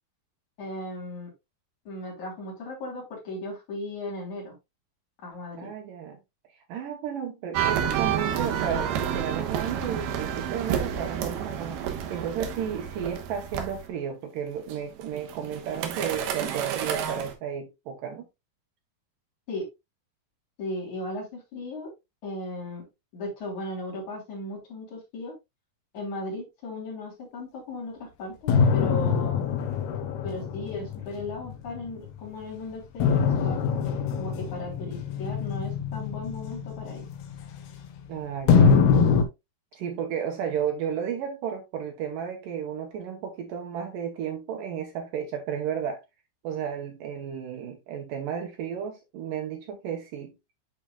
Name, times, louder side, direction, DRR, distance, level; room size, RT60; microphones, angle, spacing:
voice 1, 0.6-1.3 1.8-4.5 5.2-5.7 19.5-19.7 20.6-21.9 22.2-22.9 23.1-25.3 25.9-29.4 30.2-33.6 34.2-37.1, left 2 dB, 50° left, 4.6 m, -36 dB
voice 2, 5.6-6.2 6.7-18.3 38.1-38.9 39.8-46.0 46.4-50.3, right 8 dB, 70° right, 2.4 m, -33 dB
sound 1, 7.5-13.9 14.7-17.3, right 9 dB, 85° right, 3.1 m, -30 dB
sound 2, 28.5-32.2 33.0-38.0 38.5-39.2, left 6 dB, 80° left, 3.1 m, -24 dB
10.0 x 5.0 x 2.3 m
omnidirectional pair, 4.4 m